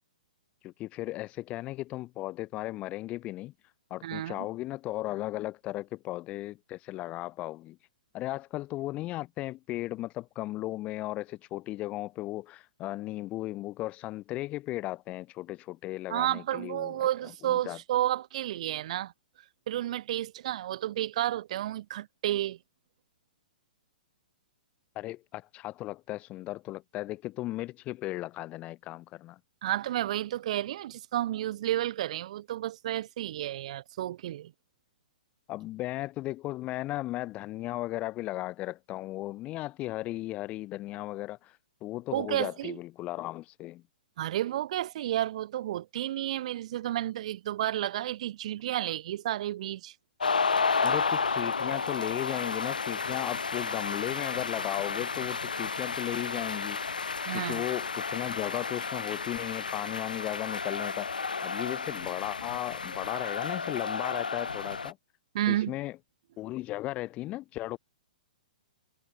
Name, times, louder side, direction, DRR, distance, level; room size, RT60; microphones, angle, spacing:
voice 1, 0.6-7.9 8.1-17.1 17.5-17.8 24.9-29.4 35.5-43.8 50.8-65.0 65.5-66.0 66.4-67.8, left 17 dB, 30° left, 1.6 m, -36 dB
voice 2, 4.0-4.5 16.1-19.1 19.7-22.6 29.6-34.5 42.1-42.8 44.2-49.9 57.2-57.6 65.3-65.7, right 13 dB, 50° right, 1.2 m, -31 dB
sound 1, 50.2-64.9, left 5 dB, 80° left, 0.4 m, -32 dB
figure-of-eight pair, 115°, 5 cm